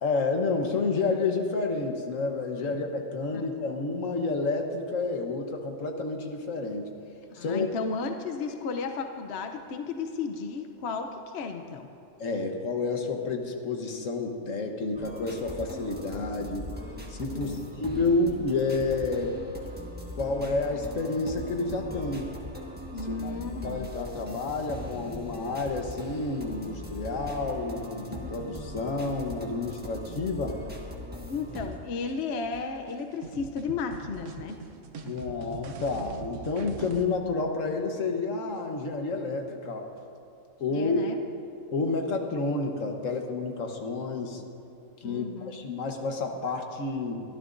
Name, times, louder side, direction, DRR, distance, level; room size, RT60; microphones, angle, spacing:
voice 1, 0.0-6.9 7.3-7.7 12.2-16.7 17.1-19.4 20.1-22.3 23.1-23.3 23.6-30.6 35.0-39.9 40.6-41.0 41.7-44.4 45.0-47.2, left 3 dB, 75° left, 3 dB, 1.5 m, -30 dB
voice 2, 7.4-11.9 17.3-17.7 22.9-23.9 31.3-34.6 40.7-41.2 45.0-45.7, left 4 dB, 60° left, 6 dB, 0.9 m, -34 dB
sound 1, 14.9-31.7, left 1 dB, 10° right, 1.4 m, -40 dB
sound 2, 31.5-37.1, right 5 dB, 70° right, 1.1 m, -43 dB
23.0 x 13.0 x 2.6 m, 2.7 s
omnidirectional pair, 1.4 m